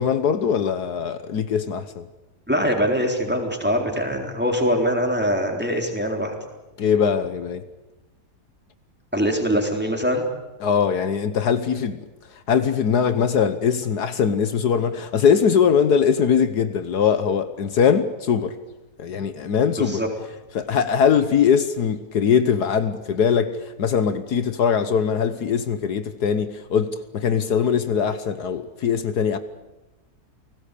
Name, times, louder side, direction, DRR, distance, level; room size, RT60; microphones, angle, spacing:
voice 1, 0.0-2.1 6.8-7.6 10.6-12.0 12.5-18.6 19.0-20.0 20.5-29.4, left 7 dB, 70° left, 1.6 m, -21 dB
voice 2, 2.5-6.3 9.1-10.2 19.8-20.1, equal, 5° right, 3.9 m, -23 dB
29.5 x 19.0 x 8.4 m
omnidirectional pair, 1.8 m